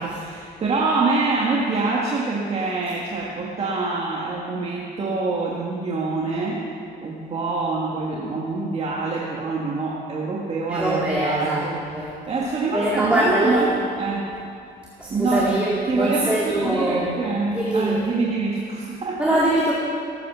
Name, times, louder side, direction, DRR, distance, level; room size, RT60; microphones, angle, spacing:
voice 1, 0.0-6.6 7.0-14.3 15.1-15.5 15.9-19.4, right 3 dB, 35° right, -4 dB, 1.8 m, -25 dB
voice 2, 10.7-12.1 12.7-13.8 15.0-17.1 17.5-18.0 19.2-19.7, right 1 dB, 5° right, -6 dB, 2.2 m, -23 dB
18.0 x 9.2 x 6.2 m, 2.4 s
cardioid pair, 110°, 17 cm